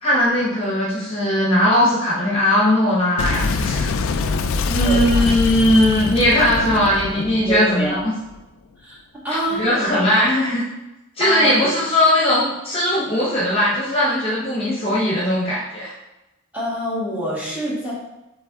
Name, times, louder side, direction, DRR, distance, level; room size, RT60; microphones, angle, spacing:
voice 1, 0.0-3.9 4.7-8.0 9.5-10.6 11.2-15.9, left 1 dB, 30° left, -6 dB, 1.0 m, -19 dB
Boom, 3.2-8.4, left 4 dB, 80° left, 0.3 m, -24 dB
voice 2, 4.8-5.3 7.5-8.0 8.8-9.0 9.2-9.7 11.2-11.7 16.5-17.9, right 1 dB, 5° right, -8 dB, 1.6 m, -25 dB
4.0 x 3.7 x 3.6 m, 0.97 s
head